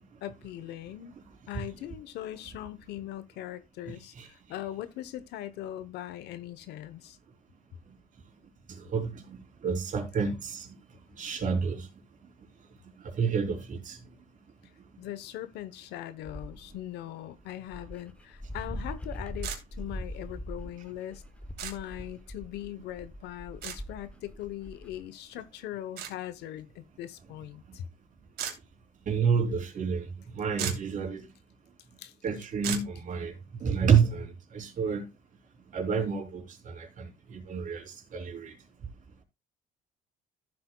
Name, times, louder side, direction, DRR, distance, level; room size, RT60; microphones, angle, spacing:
voice 1, 0.2-1.1 1.5-7.2 15.0-21.2 21.6-27.9 32.0-32.1, left 12 dB, 80° left, 0.9 m, -40 dB
voice 2, 3.9-4.3 8.7-9.4 9.6-10.7 11.2-11.9 13.0-14.0 29.1-30.1 30.3-31.3 32.2-33.3 33.6-35.1 35.7-38.5, right 6 dB, 50° right, 3.5 m, -29 dB
Dog, 16.2-16.8 17.4-17.5 17.7-25.0, equal, 5° left, 0.9 m, -41 dB
sound 1, 19.4-19.6 21.6-21.7 23.6-23.8 26.0-26.1 28.4-28.6 30.2-30.3 30.5-30.9 32.6-32.9, right 8 dB, 75° right, 2.9 m, -34 dB
14.5 x 7.9 x 2.3 m
cardioid pair, 110°, 17 cm